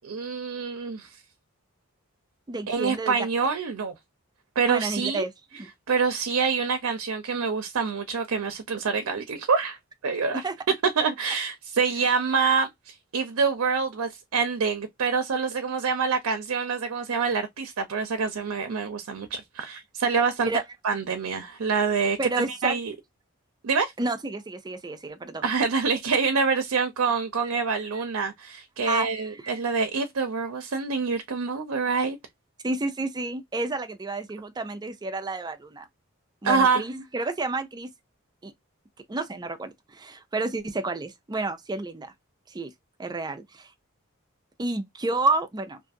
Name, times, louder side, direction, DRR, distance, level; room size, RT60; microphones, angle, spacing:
voice 1, 0.0-1.1 2.7-3.9 4.6-5.2 5.9-9.8 10.0-10.4 11.0-20.5 20.8-22.9 23.6-23.9 25.4-32.2 36.4-36.8, right 5 dB, 80° right, 0.5 m, -26 dB
voice 2, 2.5-3.2 4.7-5.3 5.6-5.7 10.3-10.6 20.4-20.6 22.2-22.8 24.0-25.5 28.8-29.6 32.6-35.9 36.4-37.9 38.4-38.5 39.1-42.1 42.5-42.7 43.0-43.7 44.6-45.8, right 2 dB, 20° right, 0.4 m, -30 dB
2.5 x 2.4 x 2.5 m
head